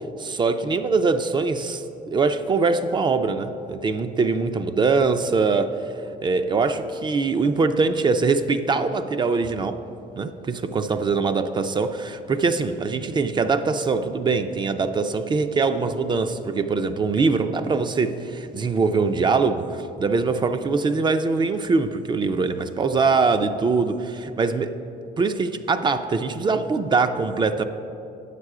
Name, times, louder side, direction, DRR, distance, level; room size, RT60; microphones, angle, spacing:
voice 1, 0.2-9.8 10.2-24.7 25.2-27.6, right 4 dB, 25° right, 9 dB, 0.4 m, -23 dB
8.9 x 6.7 x 4.8 m, 2.9 s
cardioid pair, 110°, 17 cm